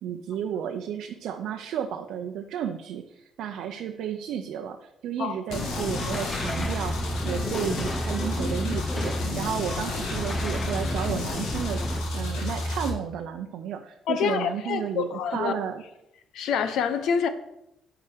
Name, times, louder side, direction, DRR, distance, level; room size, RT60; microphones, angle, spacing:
voice 1, 0.0-7.0 7.2-15.8, right 9 dB, 70° right, 0.6 m, -32 dB
sound 1, 5.5-12.9, left 1 dB, 90° left, 2.3 m, -31 dB
sound 2, 5.5-12.0, left 2 dB, 15° left, 0.6 m, -33 dB
voice 2, 14.1-15.5 16.3-17.3, left 7 dB, 70° left, 0.9 m, -26 dB
8.5 x 4.9 x 6.7 m
cardioid pair, 165°, 0 cm